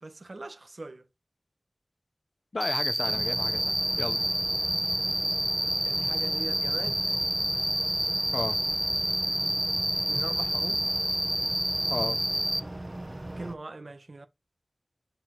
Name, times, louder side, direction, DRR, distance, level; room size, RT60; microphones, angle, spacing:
voice 1, 0.0-1.0 5.8-7.0 10.0-10.8 13.4-14.3, right 2 dB, 65° right, 1.4 m, -41 dB
voice 2, 2.5-4.2 8.3-8.6 11.9-12.2, left 2 dB, 75° left, 0.9 m, -33 dB
Cricket, 2.6-12.6, right 1 dB, 15° right, 0.4 m, -28 dB
sound 1, 3.0-13.6, right 1 dB, 35° right, 1.0 m, -39 dB
6.9 x 4.5 x 4.5 m
wide cardioid pair, 65°, 0 cm